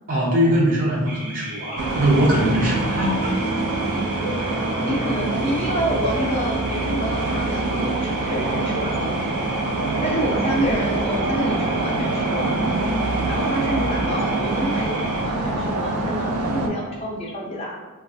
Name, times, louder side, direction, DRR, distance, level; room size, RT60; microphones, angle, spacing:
voice 1, 0.1-3.4, equal, 40° right, -5 dB, 0.7 m, -21 dB
sound 1, 1.1-15.2, right 1 dB, 60° right, 1.2 m, -36 dB
sound 2, 1.8-16.7, right 2 dB, 85° right, 0.4 m, -25 dB
voice 2, 4.8-9.1 10.0-12.6 13.2-17.8, equal, 30° left, -3 dB, 0.5 m, -28 dB
sound 3, 10.3-14.9 15.2-15.3, left 1 dB, 90° left, 0.4 m, -39 dB
3.1 x 2.3 x 2.6 m, 1.3 s
head